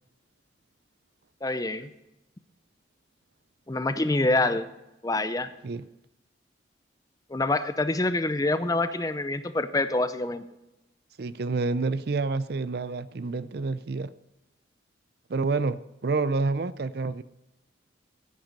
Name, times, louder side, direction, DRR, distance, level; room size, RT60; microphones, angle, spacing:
voice 1, 1.4-1.9 3.7-4.7 5.0-5.5 7.3-10.4, left 2 dB, 20° left, 0.5 m, -26 dB
voice 2, 11.2-14.1 15.3-17.2, right 3 dB, 55° right, 0.5 m, -28 dB
15.5 x 9.0 x 5.3 m
head